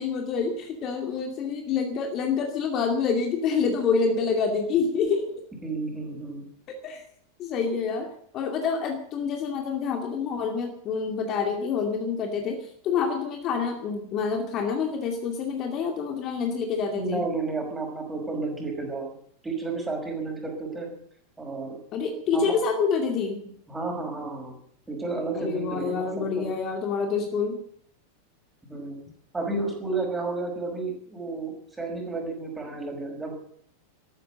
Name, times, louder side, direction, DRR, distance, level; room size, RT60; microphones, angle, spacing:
voice 1, 0.0-5.2 6.8-7.0 7.4-8.1 8.3-17.2 21.9-23.4 25.3-27.6, left 5 dB, 35° left, 3 dB, 2.4 m, -27 dB
voice 2, 5.6-6.4 16.9-19.2 19.4-20.9 21.4-21.8 22.3-22.6 23.7-24.5 24.9-26.5 28.7-29.0 29.3-33.3, right 3 dB, 10° right, 2 dB, 5.5 m, -31 dB
13.5 x 12.5 x 7.8 m, 0.64 s
figure-of-eight pair, 90°, 0 cm